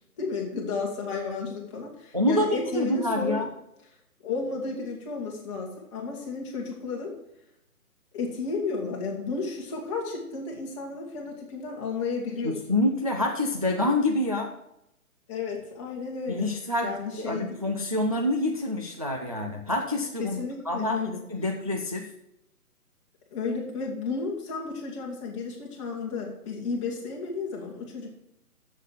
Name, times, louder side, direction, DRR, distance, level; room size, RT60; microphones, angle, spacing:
voice 1, 0.2-3.5 4.2-7.1 8.1-12.8 15.3-16.5 16.8-17.6 20.2-21.2 23.3-28.1, left 4 dB, 20° left, -1 dB, 1.8 m, -33 dB
voice 2, 2.1-3.5 12.4-14.5 16.3-20.4 20.7-21.0 21.3-22.1, left 1 dB, 25° right, 2 dB, 0.5 m, -27 dB
7.4 x 7.2 x 7.4 m, 0.81 s
figure-of-eight pair, 145°, 46 cm